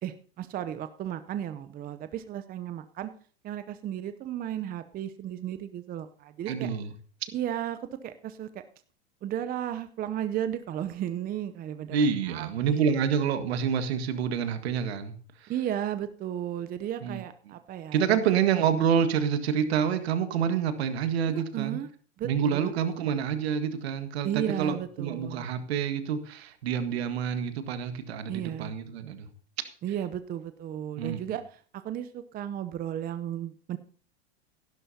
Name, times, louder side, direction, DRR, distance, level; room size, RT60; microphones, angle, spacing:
voice 1, 0.0-3.1 3.4-6.7 7.3-7.8 8.0-8.6 9.2-12.9 15.5-18.2 21.3-21.9 22.2-23.1 24.2-25.5 28.3-28.7 29.8-33.8, right 10 dB, 25° right, 11 dB, 0.7 m, -34 dB
voice 2, 6.5-6.9 11.9-15.5 17.0-17.2 17.9-21.8 22.2-29.3 31.0-31.2, right 7 dB, 75° right, 9 dB, 1.7 m, -27 dB
15.5 x 11.5 x 2.8 m, 0.43 s
hypercardioid pair, 110°, 32 cm